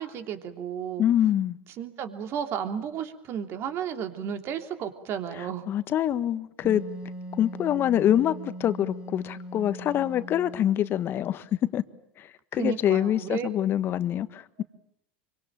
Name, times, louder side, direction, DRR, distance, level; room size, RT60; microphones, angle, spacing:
voice 1, 0.0-1.0 1.8-5.7 12.5-13.5 14.6-14.7, right 8 dB, 45° right, 3.3 m, -33 dB
voice 2, 1.0-1.6 5.7-6.8 7.4-11.4 11.7-11.8 12.2-12.3 12.5-14.6, left 11 dB, 40° left, 1.5 m, -25 dB
Wind instrument woodwind instrument, 6.6-11.1, right 1 dB, 20° right, 4.5 m, -40 dB
26.0 x 24.5 x 9.0 m
hypercardioid pair, 105°, 6 cm